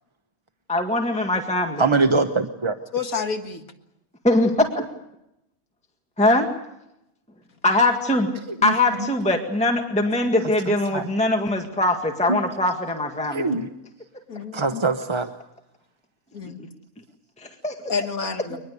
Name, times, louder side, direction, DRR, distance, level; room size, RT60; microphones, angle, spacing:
voice 1, 0.7-1.9 4.2-4.9 6.2-6.5 7.6-8.3 8.6-13.5 17.4-17.8 18.5-18.6, left 1 dB, 5° left, 3 dB, 1.8 m, -22 dB
voice 2, 1.8-2.8 8.6-8.7 10.9-11.1 12.3-12.4 13.3-13.7 14.5-15.3, right 3 dB, 25° right, 7 dB, 0.8 m, -22 dB
voice 3, 2.9-3.6 14.3-14.8 16.3-16.6 17.9-18.6, left 5 dB, 75° left, 6 dB, 2.2 m, -29 dB
23.5 x 20.5 x 8.2 m, 0.84 s
omnidirectional pair, 1.5 m